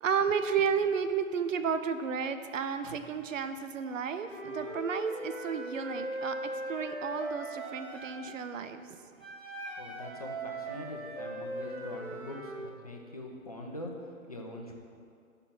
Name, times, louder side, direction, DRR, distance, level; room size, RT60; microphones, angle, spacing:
voice 1, 0.0-9.1, right 6 dB, 65° right, 10 dB, 0.5 m, -32 dB
Wind instrument woodwind instrument, 4.2-8.2 9.2-12.6, right 1 dB, 10° right, 0.6 m, -39 dB
voice 2, 9.8-14.7, left 1 dB, 30° left, 1 dB, 0.4 m, -43 dB
5.7 x 4.4 x 5.4 m, 2.3 s
figure-of-eight pair, 140°, 42 cm